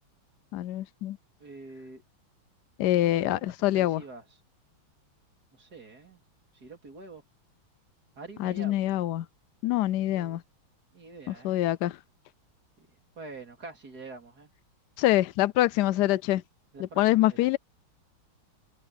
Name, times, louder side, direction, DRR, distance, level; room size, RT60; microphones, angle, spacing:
voice 1, 0.5-1.2 2.8-4.0 8.4-9.3 9.6-10.4 11.3-12.0 15.0-16.4 16.8-17.6, left 15 dB, 90° left, 0.9 m, -25 dB
voice 2, 1.4-2.0 2.8-4.2 5.5-6.2 6.5-7.2 8.2-8.9 10.1-10.4 10.9-11.6 12.8-14.5 16.7-17.5, right 3 dB, 45° right, 3.6 m, -46 dB
omnidirectional pair, 2.4 m